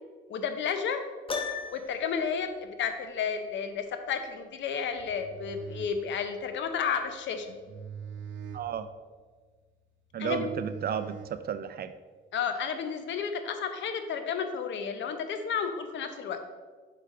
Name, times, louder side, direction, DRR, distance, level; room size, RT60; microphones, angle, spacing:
voice 1, 0.3-1.0 1.7-7.6 10.2-10.5 12.3-16.4, left 6 dB, 70° left, 7 dB, 0.7 m, -32 dB
Piano, 1.3-2.1, left 5 dB, 25° left, 0.7 m, -34 dB
sound 1, 4.9-11.9, right 7 dB, 70° right, 0.9 m, -45 dB
voice 2, 8.5-8.9 10.1-11.9, right 8 dB, 50° right, 12 dB, 0.5 m, -33 dB
5.7 x 5.1 x 3.7 m, 1.5 s
cardioid pair, 90°, 20 cm